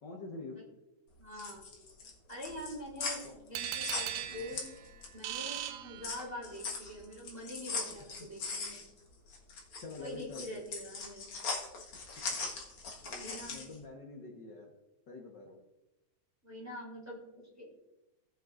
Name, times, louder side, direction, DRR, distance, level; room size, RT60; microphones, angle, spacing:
voice 1, 0.0-0.6 3.2-3.4 4.2-4.6 8.0-8.1 9.8-10.6 12.1-12.4 13.0-14.7 15.1-15.6, left 3 dB, 75° left, -1 dB, 0.9 m, -47 dB
sound 1, 1.1-5.3 5.6-13.8, left 4 dB, 45° left, 1.8 m, -40 dB
voice 2, 1.2-1.6 2.3-4.7 5.1-8.8 10.0-11.3 13.1-13.6 16.4-17.7, equal, 5° right, -4 dB, 2.7 m, -45 dB
sound 2, 3.5-6.6, right 11 dB, 80° right, 1.9 m, -39 dB
18.0 x 7.6 x 2.5 m, 0.94 s
omnidirectional pair, 4.0 m